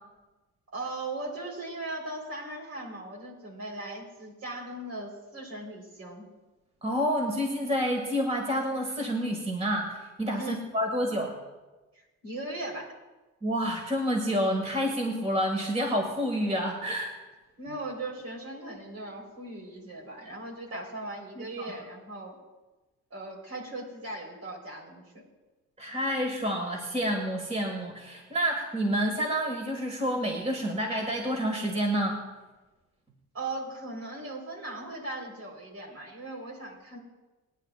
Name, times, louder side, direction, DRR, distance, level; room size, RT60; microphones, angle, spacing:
voice 1, 0.7-6.2 10.4-10.6 12.2-12.9 17.6-22.4 23.1-25.2 33.3-37.0, right 2 dB, 55° right, 0 dB, 4.0 m, -38 dB
voice 2, 6.8-11.4 13.4-17.1 20.7-20.8 21.4-21.7 25.8-32.2, equal, 20° right, 2 dB, 1.9 m, -29 dB
28.5 x 10.0 x 2.4 m, 1.2 s
cardioid pair, 90°, 30 cm